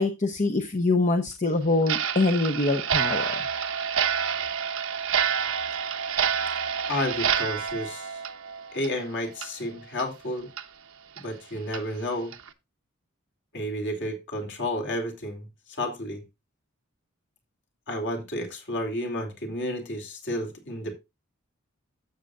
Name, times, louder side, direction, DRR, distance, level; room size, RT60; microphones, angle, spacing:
voice 1, 0.0-3.4, left 2 dB, 35° left, 0.8 m, -24 dB
Clock, 1.8-9.1 9.4-9.5 10.0-10.1 10.6-10.7 11.2-11.3 11.7-11.8 12.3-12.5, right 8 dB, 70° right, 0.9 m, -28 dB
voice 2, 6.9-8.2 8.7-10.5 11.2-12.3 13.5-16.2 17.9-21.0, left 1 dB, 55° left, 2.6 m, -31 dB
12.5 x 7.8 x 2.4 m
head